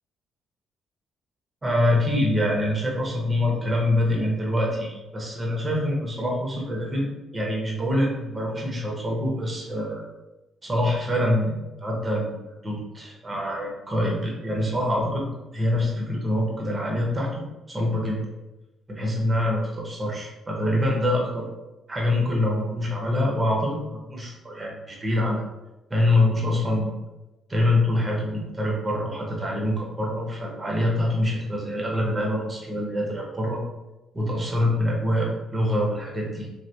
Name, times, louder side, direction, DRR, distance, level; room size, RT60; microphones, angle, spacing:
voice 1, 1.6-10.1 10.6-17.3 17.7-18.3 18.9-21.5 21.9-25.4 25.9-26.9 27.5-33.6 34.1-36.5, left 1 dB, 25° right, -2 dB, 0.8 m, -25 dB
3.2 x 2.1 x 2.7 m, 1.0 s
cardioid pair, 90°, 0 cm